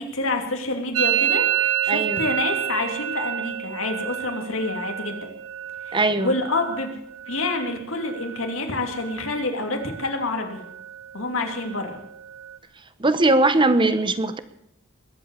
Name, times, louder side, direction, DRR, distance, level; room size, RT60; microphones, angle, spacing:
voice 1, 0.0-5.3 5.8-7.0 7.3-10.6 11.1-12.0, left 2 dB, 80° left, 3 dB, 2.7 m, -28 dB
Musical instrument, 0.9-8.6 8.8-9.4 9.7-10.3 10.5-12.6, right 11 dB, 70° right, 0.7 m, -29 dB
voice 2, 1.9-2.2 5.9-6.3 13.0-14.4, right 2 dB, 25° right, 11 dB, 0.9 m, -20 dB
21.0 x 8.2 x 8.2 m, 0.76 s
head